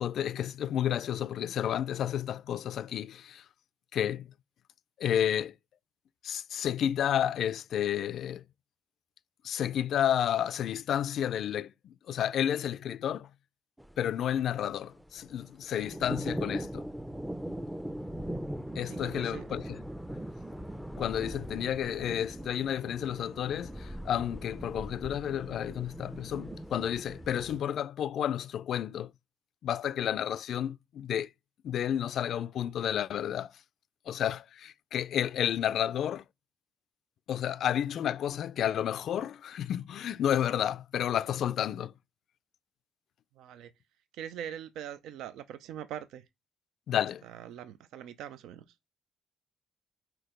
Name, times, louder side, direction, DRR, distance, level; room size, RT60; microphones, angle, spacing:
voice 1, 0.0-3.4 3.9-4.3 5.0-5.5 6.2-8.4 9.4-13.3 14.0-16.8 18.8-19.8 21.0-29.1 29.6-31.3 31.6-33.5 34.1-36.2 37.3-41.9 46.9-47.2, left 10 dB, 70° left, 0.3 m, -31 dB
sound 1, 13.8-27.6, right 1 dB, 5° right, 0.5 m, -40 dB
voice 2, 18.9-19.4 43.4-43.7 44.1-46.2 47.2-48.6, right 10 dB, 90° right, 0.5 m, -42 dB
4.5 x 4.4 x 5.0 m
cardioid pair, 90°, 0 cm